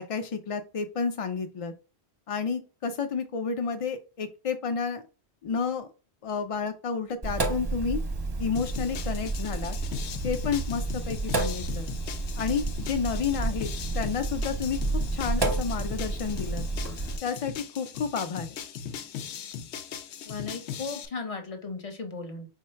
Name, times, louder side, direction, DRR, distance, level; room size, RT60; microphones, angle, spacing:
voice 1, 0.0-1.7 2.3-5.0 5.4-5.9 6.2-8.0 8.4-9.8 10.2-11.9 12.4-13.7 13.9-14.8 15.1-16.6 17.2-18.5, left 6 dB, 60° left, 7 dB, 0.3 m, -31 dB
Sink (filling or washing), 7.2-17.2, right 2 dB, 25° right, 0.6 m, -31 dB
sound 1, 8.6-21.1, left 8 dB, 80° left, 0.9 m, -39 dB
voice 2, 20.3-22.5, left 4 dB, 35° left, 6 dB, 0.8 m, -36 dB
4.6 x 2.2 x 4.3 m, 0.33 s
omnidirectional pair, 1.1 m